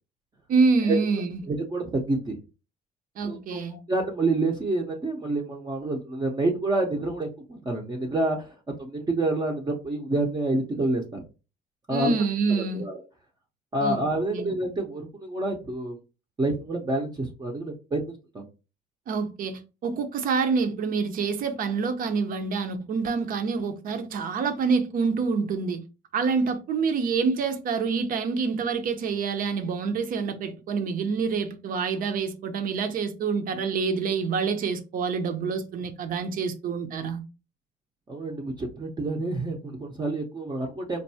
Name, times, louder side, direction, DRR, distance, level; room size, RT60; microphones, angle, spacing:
voice 1, 0.5-1.4 3.2-3.8 11.9-12.9 13.8-14.0 14.3-14.5 19.1-25.8 26.1-37.2, right 5 dB, 55° right, 0.7 m, -27 dB
voice 2, 1.5-2.4 3.2-8.5 8.8-11.2 11.9-12.1 12.7-13.0 13.7-16.0 16.4-18.4 38.1-41.0, right 2 dB, 25° right, 0.7 m, -28 dB
4.5 x 2.6 x 2.7 m
cardioid pair, 110°, 17 cm